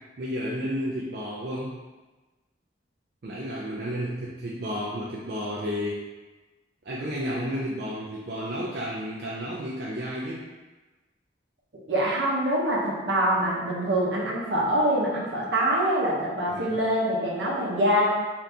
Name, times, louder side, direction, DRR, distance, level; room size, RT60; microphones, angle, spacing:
voice 1, 0.2-1.8 3.2-6.0 6.8-10.4 16.5-16.8, equal, 55° right, -6 dB, 0.4 m, -32 dB
voice 2, 11.9-18.1, right 1 dB, 75° right, -5 dB, 0.8 m, -24 dB
2.7 x 2.6 x 3.4 m, 1.2 s
head